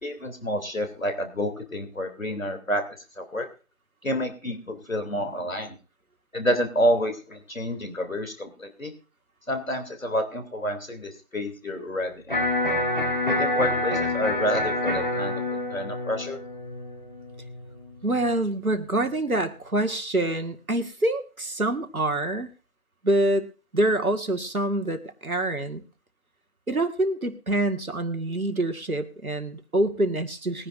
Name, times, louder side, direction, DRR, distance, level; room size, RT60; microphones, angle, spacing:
voice 1, 0.0-2.8 3.2-3.5 4.0-5.8 6.3-8.9 9.5-12.4 13.2-16.4, equal, 65° left, 6 dB, 3.1 m, -29 dB
Electric guitar, 12.3-18.3, left 1 dB, 35° left, 4.4 m, -27 dB
voice 2, 18.0-22.5 23.0-23.5 23.7-25.8 26.7-30.7, right 1 dB, 75° right, 6 dB, 2.0 m, -26 dB
21.5 x 10.5 x 2.6 m, 0.34 s
figure-of-eight pair, 175°, 43 cm